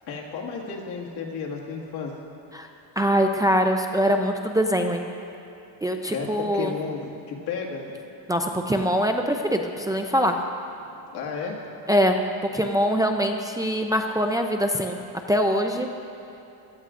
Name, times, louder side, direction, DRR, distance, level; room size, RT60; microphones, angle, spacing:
voice 1, 0.1-2.1 6.1-7.9 11.1-11.6, left 5 dB, 85° left, -2 dB, 1.9 m, -32 dB
voice 2, 3.0-5.1 5.8-6.7 8.3-10.4 11.9-12.2 12.5-15.0 15.3-15.9, equal, 10° right, 3 dB, 0.3 m, -23 dB
16.5 x 12.5 x 2.5 m, 2.8 s
cardioid pair, 145°, 39 cm